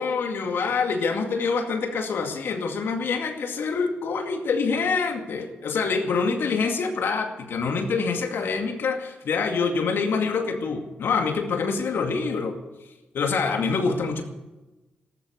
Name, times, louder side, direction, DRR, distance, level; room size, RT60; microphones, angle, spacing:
voice 1, 0.0-12.5 13.1-14.2, left 4 dB, 65° left, 5 dB, 2.2 m, -26 dB
13.5 x 12.0 x 8.1 m, 1.1 s
hypercardioid pair, 40°, 4 cm